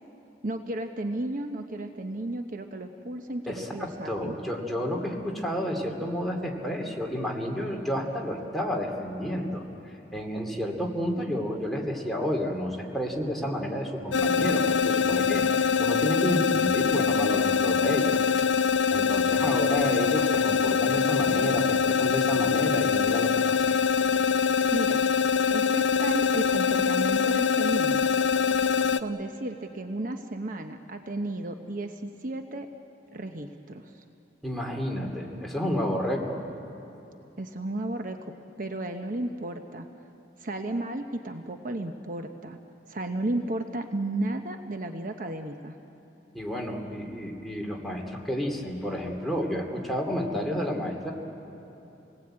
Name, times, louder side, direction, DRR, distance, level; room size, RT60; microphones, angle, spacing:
voice 1, 0.4-4.4 24.7-25.1 25.5-28.1 29.0-32.7 33.1-34.0 37.4-38.2 38.6-39.9 40.4-42.6 42.9-45.8, right 1 dB, 50° right, 5 dB, 0.9 m, -33 dB
voice 2, 3.5-9.6 10.1-15.4 15.8-18.2 18.9-23.7 34.4-36.4 46.3-51.1, equal, ahead, -1 dB, 2.7 m, -30 dB
sound 1, 14.1-29.0, left 6 dB, 80° left, 0.7 m, -24 dB
28.5 x 19.5 x 8.8 m, 3.0 s
head